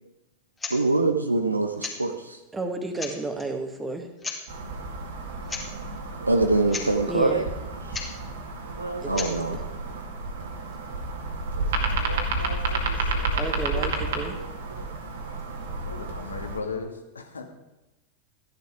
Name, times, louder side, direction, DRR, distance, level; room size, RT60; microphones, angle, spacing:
sound 1, 0.6-0.8 1.8-2.0 2.6-2.7 3.0-3.5 4.2-4.4 5.5-5.7 5.9-6.0 6.4-6.5 6.7-6.9 7.9-8.1 9.1-9.3, left 3 dB, 15° left, 2.4 m, -34 dB
voice 1, 0.7-2.4 6.1-7.5 7.8-7.9 8.6-9.6 11.6-14.8 15.9-16.2, right 2 dB, 85° right, 6 dB, 0.9 m, -27 dB
voice 2, 2.5-4.1 7.1-7.4 9.0-9.6 13.4-14.4, right 2 dB, 10° right, 5 dB, 1.9 m, -32 dB
sound 2, 4.5-16.6, right 2 dB, 60° right, 2.2 m, -31 dB
voice 3, 15.8-17.4, left 4 dB, 75° left, 5 dB, 1.7 m, -36 dB
14.0 x 11.0 x 4.9 m, 1.0 s
figure-of-eight pair, 90°, 0 cm